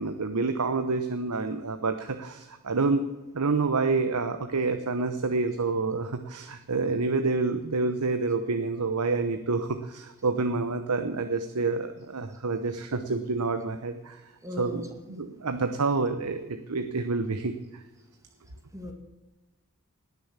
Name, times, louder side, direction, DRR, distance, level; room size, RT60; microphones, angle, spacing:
voice 1, 0.0-3.1 3.3-14.2 14.6-14.8 15.1-17.8, right 3 dB, 85° right, 8 dB, 1.0 m, -28 dB
voice 2, 14.4-14.9 18.7-18.9, left 1 dB, 15° right, 4 dB, 1.9 m, -37 dB
19.5 x 7.0 x 7.4 m, 1.1 s
head